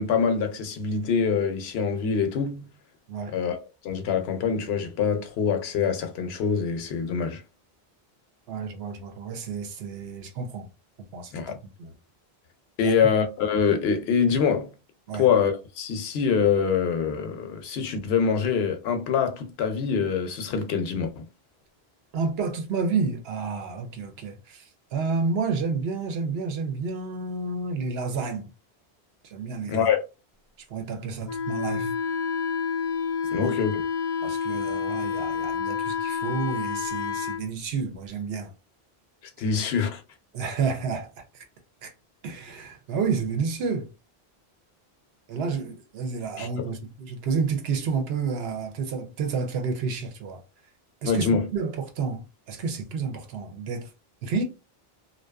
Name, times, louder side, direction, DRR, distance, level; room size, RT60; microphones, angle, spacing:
voice 1, 0.0-2.7 3.3-3.6 3.8-7.4 11.3-11.6 12.8-14.7 15.1-21.3 29.7-30.0 33.3-33.8 39.4-40.0 46.4-46.7 51.0-51.5, left 6 dB, 75° left, 0.8 m, -25 dB
voice 2, 8.5-10.7 11.1-11.9 12.8-13.0 15.1-15.3 22.1-28.5 29.2-29.9 30.7-31.9 33.4-33.5 34.2-38.5 40.3-41.4 41.8-41.9 42.2-43.9 45.3-50.4 51.0-51.3 51.5-53.9 54.2-54.4, right 5 dB, 75° right, 0.9 m, -30 dB
Wind instrument woodwind instrument, 31.2-37.4, left 6 dB, 50° left, 0.5 m, -29 dB
2.6 x 2.2 x 2.2 m
omnidirectional pair, 1.1 m